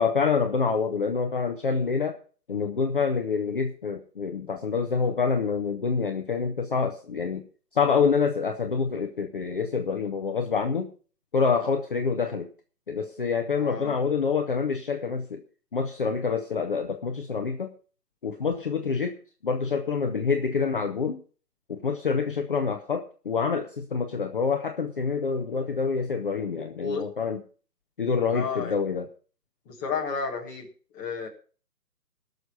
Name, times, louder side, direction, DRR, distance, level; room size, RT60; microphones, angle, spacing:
voice 1, 0.0-2.2 2.5-7.4 7.7-10.9 11.3-12.5 12.9-15.4 15.7-17.7 18.2-19.2 19.4-21.2 21.7-27.4 28.0-29.1, left 5 dB, 35° left, 4 dB, 0.9 m, -26 dB
voice 2, 13.5-13.9 26.6-27.0 28.3-28.7 29.6-30.7 30.9-31.3, left 5 dB, 10° left, -2 dB, 1.5 m, -32 dB
17.0 x 6.7 x 5.5 m, 0.40 s
hypercardioid pair, 160°, 48 cm